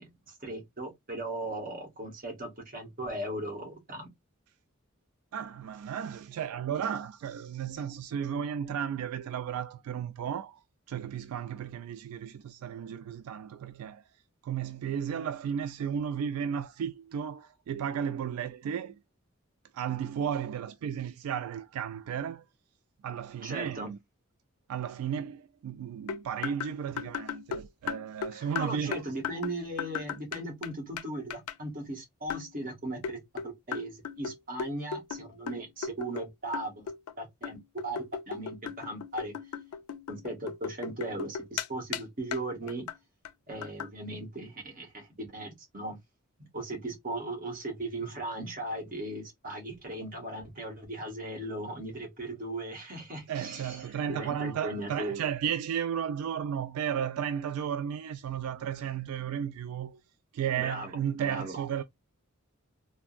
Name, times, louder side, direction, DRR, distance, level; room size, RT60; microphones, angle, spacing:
voice 1, 0.0-4.1 23.4-23.9 28.3-36.9 37.2-39.3 40.1-42.9 43.5-46.0 46.4-55.2 60.6-60.9 61.2-61.6, right 1 dB, 40° right, 1.2 m, -38 dB
voice 2, 5.3-10.6 10.9-14.0 14.4-19.0 19.7-22.4 23.0-24.0 24.7-29.0 53.3-60.0 60.3-61.8, right 8 dB, 85° right, 0.3 m, -34 dB
sound 1, 26.1-30.7 31.0-31.1 31.3-31.5 32.3-32.5 33.0-36.3 36.5-37.1 37.4-41.7 41.9-42.0 42.3-42.4 42.7-43.0 43.2-43.3 43.6-43.9, left 7 dB, 90° left, 0.4 m, -37 dB
3.4 x 2.0 x 2.4 m
head